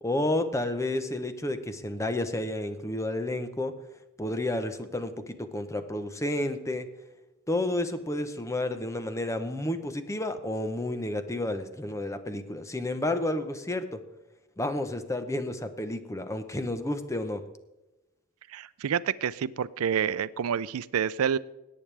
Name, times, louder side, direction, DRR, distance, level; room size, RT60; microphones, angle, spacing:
voice 1, 0.0-3.8 4.2-6.9 7.5-14.0 14.6-17.4, left 1 dB, 15° left, 9 dB, 0.8 m, -31 dB
voice 2, 18.5-21.4, right 8 dB, 90° right, 18 dB, 0.4 m, -28 dB
18.0 x 8.6 x 3.4 m, 1.0 s
head